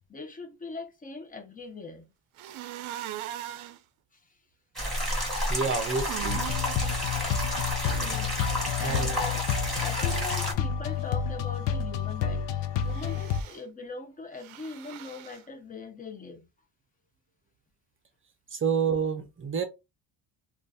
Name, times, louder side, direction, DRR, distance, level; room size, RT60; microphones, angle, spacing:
voice 1, 0.1-2.1 5.3-5.4 7.8-8.4 8.8-16.5, left 3 dB, 20° left, 0.5 m, -41 dB
sound 1, 2.4-3.8 5.6-7.0 12.8-13.6 14.4-15.4, right 13 dB, 85° right, 0.6 m, -40 dB
sound 2, 4.8-10.5, equal, ahead, 1.4 m, -31 dB
voice 2, 5.5-6.4 8.8-9.1 18.5-19.6, right 6 dB, 25° right, 0.5 m, -28 dB
sound 3, 6.3-13.4, left 7 dB, 65° left, 0.6 m, -30 dB
2.6 x 2.4 x 3.4 m
cardioid pair, 140°, 47 cm